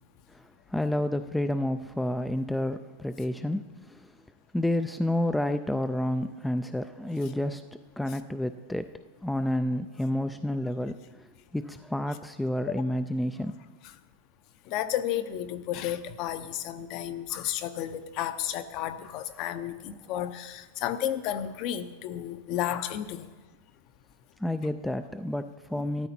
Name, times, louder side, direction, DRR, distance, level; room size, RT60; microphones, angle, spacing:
voice 1, 0.3-4.1 4.5-7.6 8.0-8.9 9.2-13.6 24.4-26.1, left 1 dB, 5° left, 9 dB, 0.3 m, -30 dB
voice 2, 14.7-23.2, left 11 dB, 40° left, 12 dB, 0.7 m, -32 dB
13.0 x 13.0 x 4.3 m, 1.3 s
supercardioid pair, 160°, 0 cm